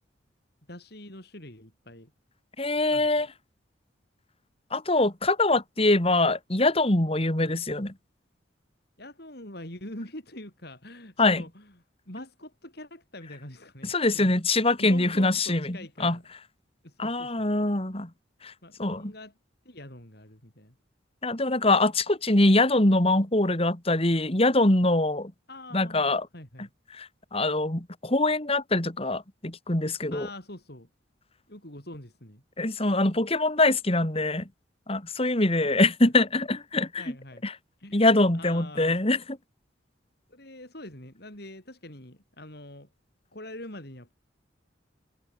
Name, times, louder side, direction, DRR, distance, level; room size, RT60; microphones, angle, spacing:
voice 1, 0.7-2.1 2.9-3.1 7.3-7.5 9.0-11.8 12.1-14.3 14.8-16.2 16.8-17.5 18.6-19.3 19.6-20.8 25.5-26.7 30.1-30.9 31.5-32.4 35.6-35.7 37.0-37.4 37.8-39.0 40.3-42.9 43.3-44.1, left 1 dB, 55° left, 7.8 m, -44 dB
voice 2, 2.6-3.3 4.7-7.9 11.2-11.4 13.8-16.2 17.0-18.1 18.4-18.5 18.8-19.1 21.2-25.3 25.7-26.3 26.9-30.3 32.6-34.5 34.9-37.0 37.4-37.5 37.9-39.2, left 2 dB, 30° left, 2.7 m, -23 dB
head